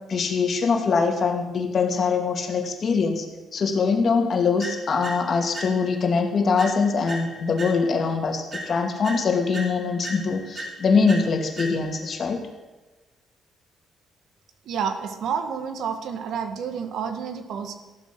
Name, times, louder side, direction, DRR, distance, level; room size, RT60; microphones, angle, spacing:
voice 1, 0.1-3.3 3.5-12.4, left 5 dB, 50° left, 3 dB, 2.5 m, -23 dB
sound 1, 4.6-6.1 6.6-8.1 8.5-12.1, right 1 dB, 45° right, 4.6 m, -38 dB
voice 2, 14.7-17.8, right 7 dB, 75° right, 7 dB, 1.7 m, -29 dB
14.5 x 12.0 x 6.2 m, 1.2 s
cardioid pair, 90°, 0 cm